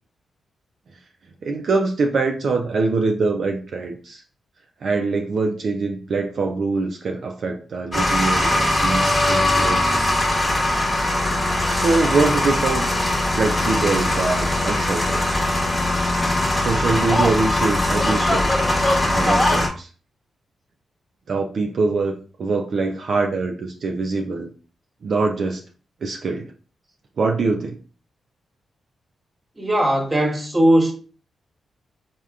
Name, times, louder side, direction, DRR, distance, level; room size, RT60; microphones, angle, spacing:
voice 1, 1.4-4.2 4.8-10.2 11.7-12.9 13.3-15.2 16.6-18.5 19.1-19.9 21.3-24.5 25.0-25.6 26.0-26.5 27.2-27.8, right 3 dB, 65° right, 0.3 m, -23 dB
sound 1, 7.9-19.7, left 1 dB, 20° left, 0.9 m, -20 dB
voice 2, 29.6-30.9, right 1 dB, 25° right, 1.0 m, -18 dB
3.5 x 2.1 x 2.3 m
supercardioid pair, 50°, 0 cm